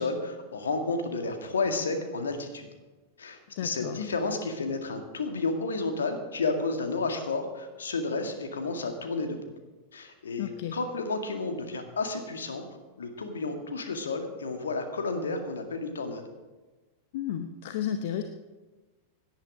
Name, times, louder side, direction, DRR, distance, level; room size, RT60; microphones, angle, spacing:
voice 1, 0.0-2.7 3.2-9.4 9.9-12.6 13.0-16.3, left 3 dB, 70° left, 5 dB, 1.9 m, -31 dB
voice 2, 3.6-4.0 10.4-10.7 17.1-18.2, left 10 dB, 50° left, 8 dB, 0.8 m, -32 dB
17.5 x 10.5 x 5.1 m, 1.3 s
figure-of-eight pair, 90°, 0 cm